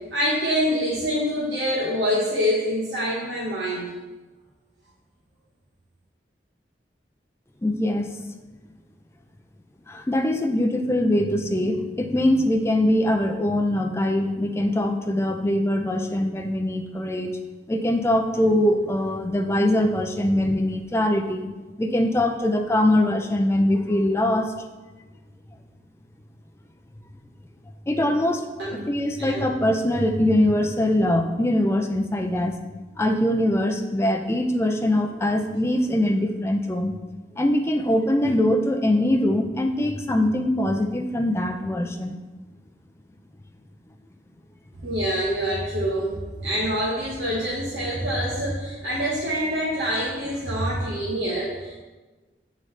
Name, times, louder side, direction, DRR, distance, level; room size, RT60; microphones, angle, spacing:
voice 1, 0.1-3.9 28.6-28.8 29.2-29.5 44.7-51.8, equal, 90° right, -7 dB, 1.1 m, -26 dB
voice 2, 7.6-8.2 9.9-17.4 17.7-21.5 21.8-24.5 27.9-32.6 33.0-37.0 37.4-42.2, left 1 dB, 15° left, 4 dB, 0.4 m, -22 dB
7.7 x 3.8 x 3.2 m, 1.2 s
head